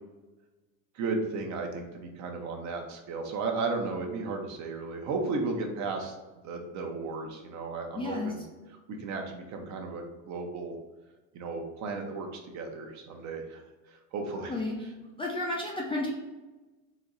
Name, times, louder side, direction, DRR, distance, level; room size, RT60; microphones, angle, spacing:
voice 1, 0.9-6.1 6.4-8.4 9.0-10.7 11.3-13.6 13.9-14.5, right 3 dB, 45° right, 3 dB, 0.8 m, -34 dB
voice 2, 7.9-8.3 14.5-14.7 15.2-16.1, left 2 dB, 15° left, -2 dB, 0.4 m, -31 dB
4.2 x 3.0 x 3.9 m, 1.2 s
cardioid pair, 140°, 41 cm